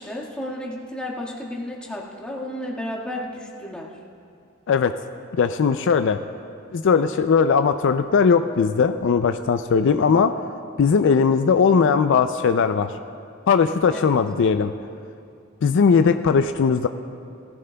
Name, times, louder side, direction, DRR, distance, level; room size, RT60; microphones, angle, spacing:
voice 1, 0.0-3.9 10.1-10.2 13.9-14.2, left 1 dB, 5° left, -5 dB, 1.7 m, -32 dB
voice 2, 5.4-6.2 6.7-10.3 10.8-12.9 13.5-14.7 15.6-16.9, left 5 dB, 65° left, 9 dB, 0.4 m, -19 dB
19.5 x 14.5 x 2.3 m, 2.4 s
head